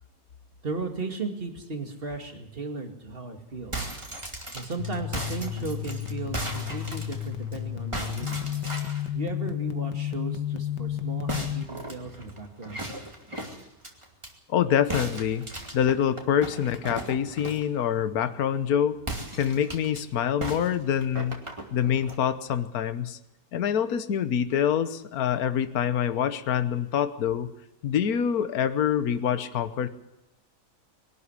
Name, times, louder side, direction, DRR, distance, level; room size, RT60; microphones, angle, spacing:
voice 1, 0.6-3.7 4.5-8.4 9.1-12.9, right 3 dB, 30° right, 4 dB, 2.6 m, -35 dB
sound 1, 3.5-7.6 7.9-9.1 11.3-14.3 14.9-17.7 19.0-20.0 20.4-22.2, right 1 dB, 15° right, 2.5 m, -37 dB
sound 2, 4.8-11.6, left 11 dB, 80° left, 1.7 m, -32 dB
voice 2, 14.5-15.5 15.7-19.0 19.3-21.4 21.7-23.2 23.5-27.5 27.8-29.9, left 9 dB, 60° left, 11 dB, 1.5 m, -25 dB
22.5 x 12.5 x 9.9 m, 0.93 s
omnidirectional pair, 1.8 m